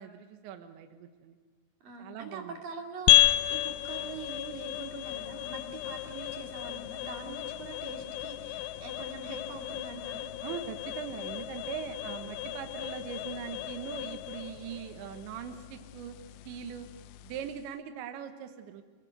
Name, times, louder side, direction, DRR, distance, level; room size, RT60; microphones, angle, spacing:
voice 1, 0.0-1.4 2.0-2.6 10.4-16.2 16.5-16.9 17.2-18.8, right 8 dB, 75° right, 7 dB, 3.4 m, -41 dB
voice 2, 1.8-10.3, right 4 dB, 50° right, 2 dB, 4.1 m, -43 dB
sound 1, 3.1-17.7, left 14 dB, 80° left, 3.1 m, -32 dB
29.0 x 19.5 x 6.7 m, 1.5 s
omnidirectional pair, 5.5 m